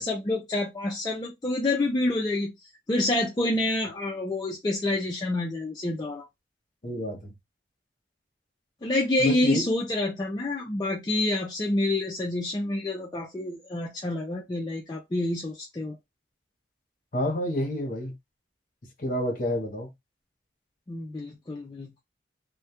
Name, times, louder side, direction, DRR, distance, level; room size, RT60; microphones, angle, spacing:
voice 1, 0.0-2.5 2.9-6.3 8.8-16.0 20.9-22.0, left 2 dB, 20° left, 0.3 m, -28 dB
voice 2, 6.8-7.3 9.2-9.7 17.1-18.2 19.0-19.9, equal, 45° left, 0.8 m, -29 dB
2.2 x 2.0 x 2.8 m
head